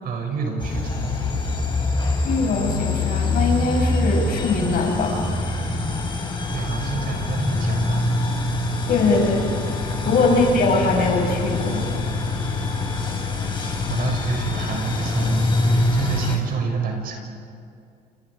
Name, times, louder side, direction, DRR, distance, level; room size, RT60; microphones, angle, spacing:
voice 1, 0.0-1.1 6.5-8.2 10.0-10.3 13.4-17.2, right 5 dB, 60° right, 2 dB, 6.5 m, -28 dB
sound 1, 0.6-16.4, left 2 dB, 30° left, 5.3 m, -24 dB
voice 2, 2.2-5.2 8.9-9.5 9.7-11.9, left 3 dB, 60° left, 1 dB, 7.0 m, -21 dB
29.5 x 29.0 x 5.0 m, 2.4 s
cardioid pair, 110°, 17 cm